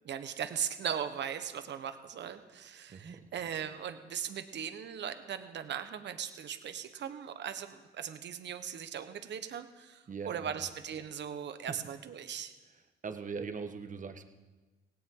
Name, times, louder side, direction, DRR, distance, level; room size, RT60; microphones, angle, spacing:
voice 1, 0.0-12.5, right 8 dB, 65° right, 10 dB, 1.2 m, -39 dB
voice 2, 2.9-3.3 10.1-10.7 11.7-11.8 13.0-14.2, right 5 dB, 40° right, 7 dB, 1.4 m, -40 dB
17.5 x 17.5 x 3.9 m, 1.2 s
cardioid pair, 90°, 20 cm